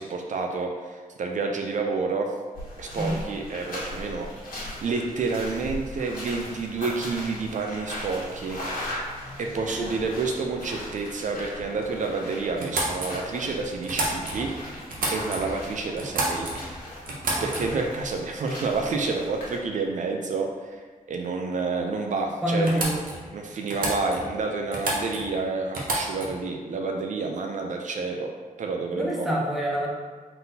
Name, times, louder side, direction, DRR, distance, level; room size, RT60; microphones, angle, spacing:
voice 1, 0.0-2.3 2.8-4.3 4.8-8.6 9.4-14.5 15.1-16.5 17.4-20.8 21.1-22.8 23.3-29.3, right 4 dB, 60° right, 2 dB, 0.4 m, -29 dB
sound 1, 2.5-19.6, left 1 dB, 75° left, 1.4 m, -39 dB
sound 2, 12.6-14.5 14.9-15.6 16.0-16.7 17.1-17.9 18.9-19.1 19.4-19.8 21.8-21.9 22.1-22.2 22.6-23.3 23.7-24.4 24.7-25.3 25.7-26.4, right 2 dB, 75° right, 0.8 m, -30 dB
voice 2, 22.4-23.0 28.9-29.9, equal, ahead, -3 dB, 0.7 m, -26 dB
3.9 x 3.9 x 2.7 m, 1.5 s
wide cardioid pair, 155°, 15 cm